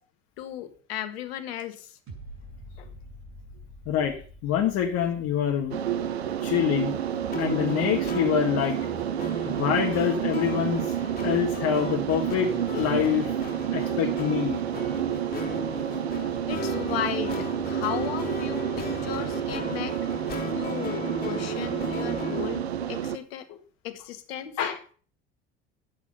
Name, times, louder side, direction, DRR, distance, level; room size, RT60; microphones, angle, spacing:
voice 1, 0.4-1.9 2.8-2.9 16.5-20.0 20.5-23.4 23.8-24.5, left 10 dB, 75° left, 10 dB, 1.5 m, -35 dB
sound 1, 2.1-9.1 9.6-9.7, equal, 45° right, 6.9 m, -48 dB
voice 2, 3.9-4.2 4.4-6.0 6.4-7.0 7.4-8.8 9.4-10.9 11.2-13.4 13.7-14.6 23.5-23.6 24.6-24.8, left 9 dB, 55° left, 2 dB, 1.5 m, -26 dB
sound 2, 5.7-23.2, right 10 dB, 90° right, 0.8 m, -29 dB
sound 3, 7.3-22.6, left 3 dB, 30° left, 3.0 m, -37 dB
11.5 x 8.6 x 5.4 m, 0.42 s
hypercardioid pair, 70°, 31 cm